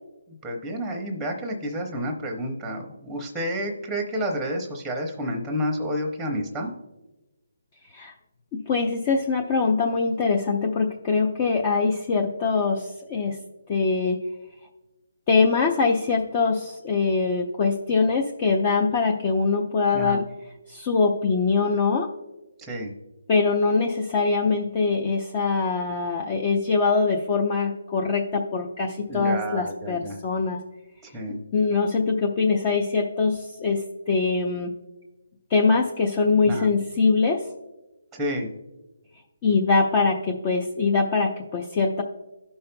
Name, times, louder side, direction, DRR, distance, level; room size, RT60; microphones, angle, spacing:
voice 1, 0.4-6.7 19.9-20.2 22.6-22.9 29.1-30.2 31.0-31.4 36.5-36.7 38.1-38.5, equal, 5° right, 3 dB, 0.8 m, -30 dB
voice 2, 8.5-13.4 13.7-14.2 15.3-20.2 20.7-22.1 23.3-30.6 31.3-34.7 35.5-37.4 39.4-42.0, left 4 dB, 25° left, 0 dB, 0.6 m, -23 dB
15.5 x 5.5 x 2.2 m, 1.1 s
hypercardioid pair, 165°, 0 cm